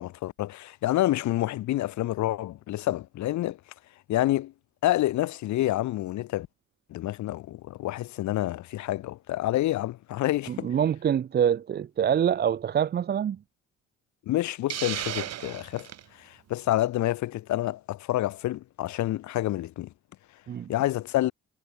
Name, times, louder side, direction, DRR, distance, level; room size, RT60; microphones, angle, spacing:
voice 1, 0.0-3.6 4.1-4.5 4.8-6.5 6.9-10.7 14.3-19.9 20.7-21.3, left 15 dB, 70° left, 0.7 m, -28 dB
voice 2, 10.5-13.4 20.5-20.7, right 9 dB, 35° right, 0.5 m, -25 dB
Hiss, 14.7-16.0, right 11 dB, 60° right, 0.9 m, -34 dB
cardioid pair, 90°, 30 cm